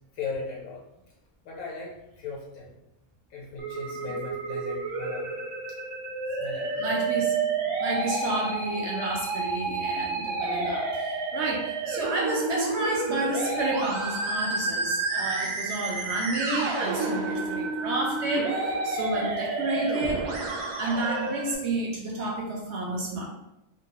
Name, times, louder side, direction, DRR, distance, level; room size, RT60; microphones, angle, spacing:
voice 1, 0.1-0.8 1.4-2.7 3.3-5.3 6.4-6.9, left 4 dB, 80° left, -3 dB, 1.1 m, -37 dB
Musical instrument, 3.6-21.6, right 3 dB, 80° right, 1.1 m, -30 dB
voice 2, 6.7-7.4 7.8-20.3 20.8-23.3, right 2 dB, 65° right, -1 dB, 0.7 m, -30 dB
2.8 x 2.3 x 2.8 m, 0.88 s
omnidirectional pair, 1.6 m